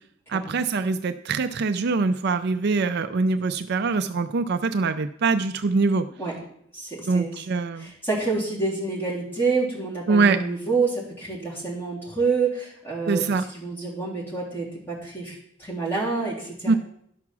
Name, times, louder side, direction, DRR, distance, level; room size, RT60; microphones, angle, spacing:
voice 1, 0.3-6.1 7.1-7.9 10.1-10.4 13.1-13.4 16.7-16.8, right 4 dB, 55° right, 9 dB, 0.4 m, -23 dB
voice 2, 6.7-7.3 7.8-13.2 13.5-16.8, right 4 dB, 10° left, -5 dB, 3.4 m, -28 dB
11.5 x 5.9 x 6.1 m, 0.69 s
head